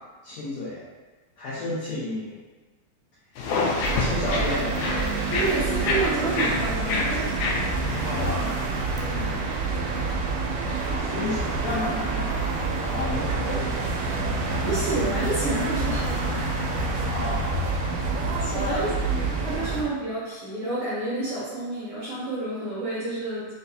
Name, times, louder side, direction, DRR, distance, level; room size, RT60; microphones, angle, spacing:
voice 1, 0.2-0.8 1.4-2.4 4.0-4.9 7.6-8.6 10.7-14.1 16.8-17.5 18.5-18.9 19.5-19.8, left 2 dB, 65° left, -11 dB, 1.6 m, -32 dB
sound 1, 3.4-8.5, left 3 dB, 80° left, 2.0 m, -28 dB
sound 2, 3.8-19.8, right 3 dB, 85° right, 2.2 m, -27 dB
voice 2, 5.3-7.3 8.0-8.1 9.0-9.4 14.6-16.6 18.4-23.5, right 2 dB, 65° right, -10 dB, 1.5 m, -29 dB
6.5 x 2.3 x 2.7 m, 1.3 s
omnidirectional pair, 3.6 m